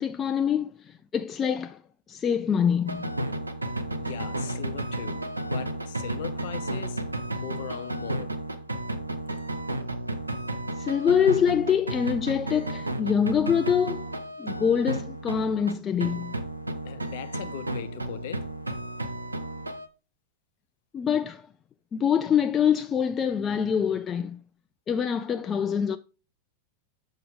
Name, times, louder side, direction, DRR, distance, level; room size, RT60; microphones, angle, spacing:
voice 1, 0.0-1.8 2.1-3.1 10.8-14.1 14.4-16.4 20.9-21.5 21.9-24.4 24.9-26.0, left 8 dB, 25° left, 0.3 m, -25 dB
sound 1, 2.9-15.8 16.0-19.9, right 1 dB, 80° right, 0.7 m, -33 dB
voice 2, 4.0-8.4 16.8-18.5, left 11 dB, 55° left, 0.7 m, -40 dB
7.5 x 5.2 x 3.8 m
figure-of-eight pair, 90°, 0 cm